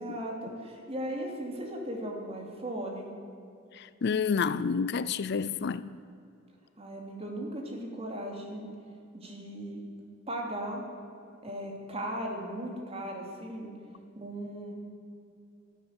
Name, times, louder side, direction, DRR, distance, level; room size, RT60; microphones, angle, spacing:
voice 1, 0.0-3.1 6.8-8.7 9.1-9.8 10.3-10.8 11.4-13.7 14.1-14.7, right 1 dB, 30° right, 1 dB, 2.9 m, -37 dB
voice 2, 3.7-6.0, left 5 dB, 55° left, 16 dB, 0.4 m, -29 dB
13.0 x 12.0 x 8.9 m, 2.5 s
head